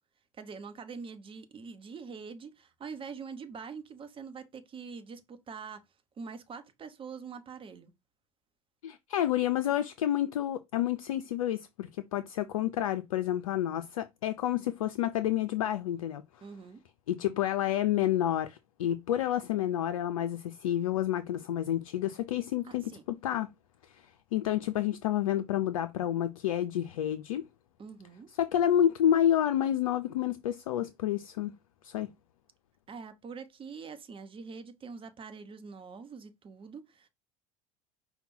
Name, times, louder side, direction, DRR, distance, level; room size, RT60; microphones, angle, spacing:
voice 1, 0.4-5.8 6.2-7.9 16.4-16.8 22.6-23.0 27.8-28.3 32.9-37.1, right 5 dB, 30° right, 0.9 m, -44 dB
voice 2, 8.8-16.2 17.1-23.5 23.9-27.4 28.4-31.5 31.8-32.1, left 11 dB, 70° left, 0.4 m, -29 dB
5.2 x 2.2 x 4.3 m
figure-of-eight pair, 65°, 18 cm